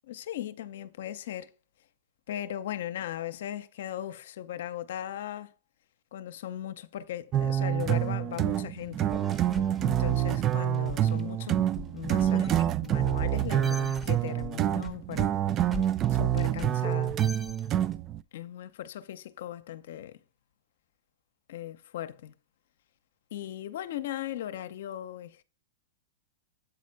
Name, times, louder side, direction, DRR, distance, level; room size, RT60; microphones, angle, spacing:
voice 1, 0.1-1.5 2.3-5.5 6.1-9.1 9.8-15.7 16.1-17.2 18.3-20.2 21.5-22.3 23.3-25.4, left 12 dB, 70° left, 0.7 m, -38 dB
sound 1, 7.3-18.2, right 11 dB, 30° right, 0.4 m, -27 dB
sound 2, 9.1-13.3 13.6-18.0, right 1 dB, 15° right, 1.0 m, -41 dB
8.1 x 4.2 x 4.6 m
hypercardioid pair, 120°, 0 cm